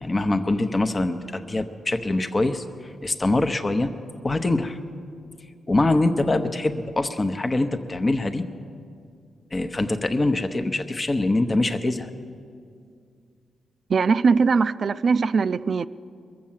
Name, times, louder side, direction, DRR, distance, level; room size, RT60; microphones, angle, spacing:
voice 1, 0.0-3.9 4.2-4.8 5.7-8.4 9.5-12.1, left 2 dB, 30° left, 7 dB, 0.8 m, -24 dB
voice 2, 13.9-15.9, right 5 dB, 55° right, 14 dB, 0.4 m, -20 dB
21.5 x 7.5 x 7.3 m, 2.3 s
cardioid pair, 75°, 0 cm